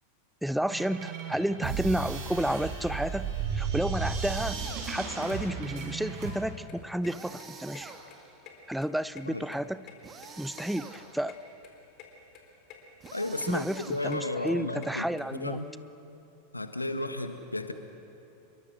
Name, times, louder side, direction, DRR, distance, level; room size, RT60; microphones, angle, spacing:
voice 1, 0.4-7.9 8.7-9.8 10.4-11.4 13.5-15.6, right 1 dB, ahead, 15 dB, 0.5 m, -31 dB
sound 1, 0.7-6.3, right 6 dB, 40° right, 6.3 m, -34 dB
sound 2, 4.1-5.2 7.0-8.5 10.0-11.3 13.0-14.4, right 5 dB, 20° right, 2.1 m, -47 dB
sound 3, 6.7-15.2, left 7 dB, 40° left, 3.9 m, -51 dB
voice 2, 13.1-15.7 16.5-17.7, left 2 dB, 85° left, 8 dB, 1.6 m, -33 dB
27.5 x 23.0 x 6.4 m, 2.9 s
figure-of-eight pair, 90°, 0 cm